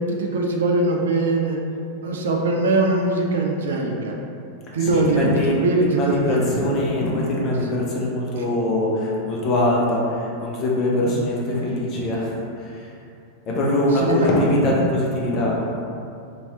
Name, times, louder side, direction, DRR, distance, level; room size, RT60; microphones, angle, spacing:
voice 1, 0.1-1.6 2.0-4.2 4.7-5.3 5.6-6.5 8.4-8.5 13.9-14.3, right 2 dB, 60° right, 0 dB, 0.4 m, -21 dB
voice 2, 4.8-5.5 6.0-12.7 13.5-15.7, left 1 dB, 35° left, -4 dB, 0.7 m, -22 dB
2.8 x 2.8 x 2.8 m, 2.5 s
figure-of-eight pair, 90°, 0 cm